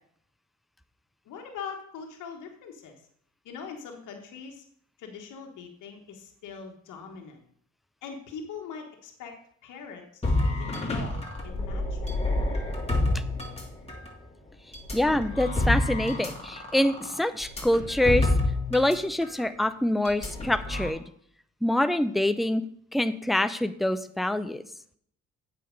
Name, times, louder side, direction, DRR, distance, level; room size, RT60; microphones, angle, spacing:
voice 1, 1.2-3.0 3.4-4.6 5.0-7.4 8.0-9.3 9.6-12.2, left 6 dB, 85° left, 3 dB, 1.5 m, -42 dB
sound 1, 10.2-14.1 14.7-19.0 19.2-19.4 20.0-20.9, left 2 dB, 20° left, 2.6 m, -28 dB
voice 2, 14.9-18.3 18.7-21.0 21.6-22.6 22.9-24.6, left 1 dB, ahead, 11 dB, 0.5 m, -25 dB
8.3 x 6.0 x 5.3 m, 0.65 s
cardioid pair, 90°, 30 cm